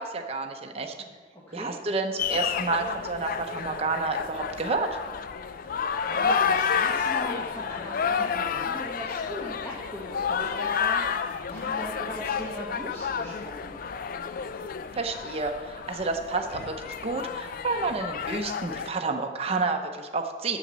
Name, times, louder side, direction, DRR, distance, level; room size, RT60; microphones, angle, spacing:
voice 1, 0.0-0.9 1.5-4.9 15.0-20.6, right 3 dB, 30° right, 4 dB, 0.7 m, -30 dB
voice 2, 1.0-1.8 5.5-13.7, left 1 dB, 15° left, -5 dB, 1.2 m, -39 dB
sound 1, 2.2-18.9, left 6 dB, 45° left, 0.4 m, -30 dB
7.1 x 7.0 x 6.2 m, 1.5 s
head